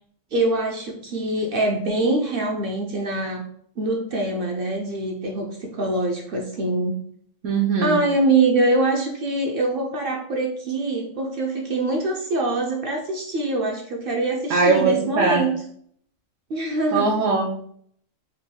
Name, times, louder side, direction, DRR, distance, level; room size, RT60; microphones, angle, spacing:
voice 1, 0.3-3.5 3.8-7.0 7.8-15.6 16.5-17.1, right 2 dB, 55° right, 1 dB, 0.6 m, -24 dB
voice 2, 7.4-8.0 14.5-15.4 16.9-17.6, right 4 dB, 75° right, -2 dB, 1.0 m, -20 dB
4.1 x 2.1 x 3.6 m, 0.63 s
omnidirectional pair, 1.4 m